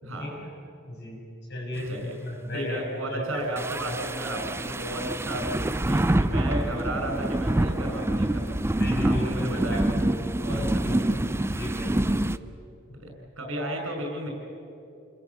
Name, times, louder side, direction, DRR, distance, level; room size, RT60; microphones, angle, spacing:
voice 1, 0.2-0.5 0.9-1.2 1.5-2.8 3.1-3.4 3.8-4.0 8.8-9.8 10.5-11.0 11.5-12.2, left 1 dB, 55° left, -2 dB, 7.0 m, -35 dB
voice 2, 2.5-11.0 12.9-14.3, right 1 dB, 75° right, 2 dB, 5.8 m, -34 dB
Rain, 3.3-10.0, left 1 dB, 30° left, 3.0 m, -52 dB
sound 1, 3.6-12.4, right 1 dB, 10° right, 0.5 m, -26 dB
28.5 x 21.5 x 7.0 m, 2.9 s
head